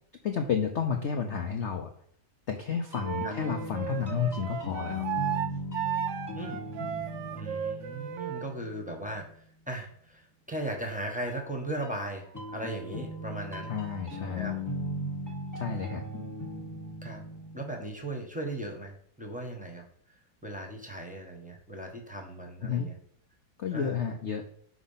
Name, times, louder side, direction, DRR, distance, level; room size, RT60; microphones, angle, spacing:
voice 1, 0.2-1.9 2.5-5.1 13.7-14.5 15.5-16.0 22.6-22.9 23.6-24.4, left 7 dB, 75° left, 5 dB, 0.6 m, -31 dB
sound 1, 2.7-9.4 11.3-17.8, left 1 dB, 20° left, 0.5 m, -38 dB
Wind instrument woodwind instrument, 3.0-8.5, right 9 dB, 70° right, 0.7 m, -34 dB
voice 2, 7.3-9.3 9.7-12.3 12.5-13.7 14.2-14.5 15.6-16.0 17.0-17.2 17.5-19.8 20.4-22.9 23.7-24.0, right 1 dB, 5° right, 2 dB, 0.8 m, -37 dB
6.1 x 4.0 x 5.6 m, 0.63 s
omnidirectional pair, 2.1 m